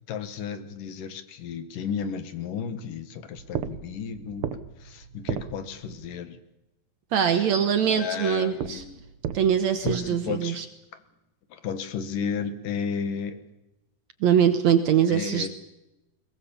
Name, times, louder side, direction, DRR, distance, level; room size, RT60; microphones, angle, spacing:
voice 1, 0.1-4.5 4.8-6.4 7.3-7.5 7.8-9.0 9.8-10.7 11.5-13.4 15.1-15.5, left 7 dB, 70° left, 10 dB, 3.1 m, -33 dB
sound 1, 3.3-6.1 8.5-10.0, right 8 dB, 90° right, 1.2 m, -35 dB
voice 2, 7.1-8.8 9.3-10.6 14.2-15.5, right 8 dB, 65° right, 10 dB, 2.0 m, -22 dB
22.0 x 21.5 x 7.1 m, 0.94 s
omnidirectional pair, 4.1 m